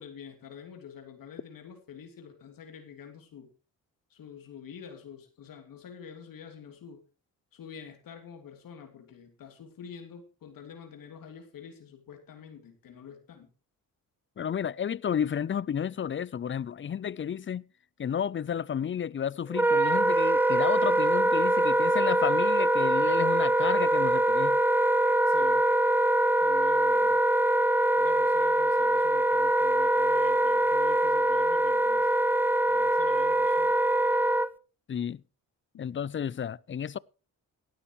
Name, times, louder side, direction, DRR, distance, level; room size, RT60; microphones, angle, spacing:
voice 1, 0.0-3.5 4.1-7.0 7.5-13.5 25.3-25.7 26.4-27.2 27.9-32.1 32.7-33.8 35.7-35.9, left 7 dB, 70° left, 3.0 m, -47 dB
voice 2, 14.4-17.6 18.0-24.6 34.9-35.2 35.8-37.0, left 8 dB, 35° left, 0.5 m, -32 dB
Wind instrument woodwind instrument, 19.5-34.5, right 1 dB, 5° right, 0.7 m, -23 dB
17.5 x 12.5 x 3.1 m
cardioid pair, 85°, 35 cm